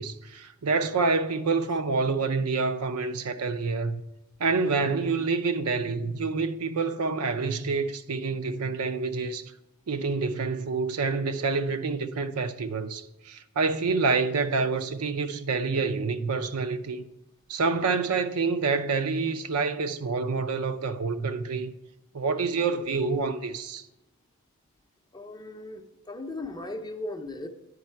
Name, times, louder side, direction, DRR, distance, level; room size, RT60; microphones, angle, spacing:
voice 1, 0.0-4.0 4.4-9.4 9.9-17.0 17.5-21.7 22.1-23.8, right 4 dB, 80° right, 0.5 m, -27 dB
voice 2, 25.1-27.5, left 2 dB, 20° left, 0.5 m, -37 dB
8.2 x 5.4 x 4.4 m
head